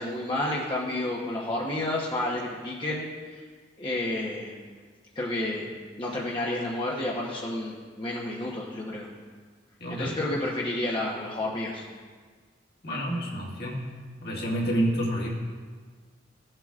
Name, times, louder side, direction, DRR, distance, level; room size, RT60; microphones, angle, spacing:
voice 1, 0.0-3.4 3.8-4.5 5.1-5.7 6.0-9.1 9.9-11.9, left 1 dB, 25° left, -4 dB, 1.0 m, -30 dB
voice 2, 9.8-10.2 12.8-13.9 14.2-15.3, equal, 60° left, -3 dB, 1.9 m, -28 dB
15.5 x 7.6 x 2.5 m, 1.5 s
head